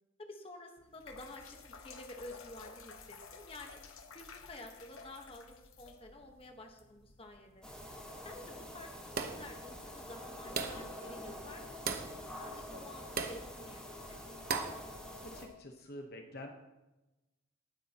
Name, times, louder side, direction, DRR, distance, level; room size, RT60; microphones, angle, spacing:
voice 1, 0.2-1.6 1.8-3.8 4.1-7.7 8.2-8.9 9.2-14.2, left 1 dB, 25° left, 3 dB, 1.3 m, -51 dB
sound 1, 0.8-7.7, left 5 dB, 80° left, 1.1 m, -54 dB
sound 2, 7.6-15.4, left 1 dB, 5° left, 1.5 m, -47 dB
sound 3, 9.2-9.5 10.6-10.9 11.9-12.2 13.2-13.4 14.5-14.8, right 5 dB, 45° right, 0.9 m, -36 dB
voice 2, 15.2-16.5, left 1 dB, 50° left, 3 dB, 1.1 m, -47 dB
18.5 x 9.8 x 3.0 m, 1.0 s
head